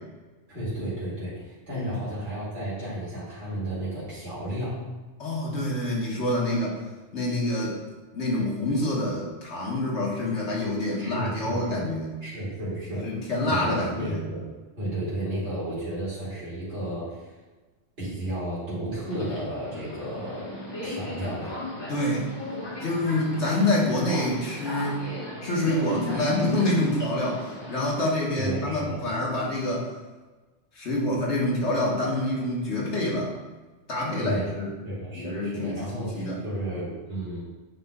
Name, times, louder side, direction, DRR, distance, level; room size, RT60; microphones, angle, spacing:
voice 1, 0.5-4.8 11.0-11.9 12.2-13.1 13.5-14.4 14.8-17.3 18.0-20.5 20.8-21.6 28.4-29.0 34.2-34.5 34.8-37.4, right 1 dB, 65° right, -12 dB, 2.6 m, -33 dB
voice 2, 5.2-6.8 7.1-7.8 8.1-12.2 13.0-14.2 21.9-22.3 22.8-25.0 25.4-29.9 30.8-33.3 33.9-34.7 35.1-36.4, left 1 dB, 75° left, -4 dB, 1.7 m, -27 dB
Subway metro underground, 19.0-27.9, left 1 dB, 20° left, 1.3 m, -37 dB
8.5 x 5.4 x 2.4 m, 1.2 s
omnidirectional pair, 1.2 m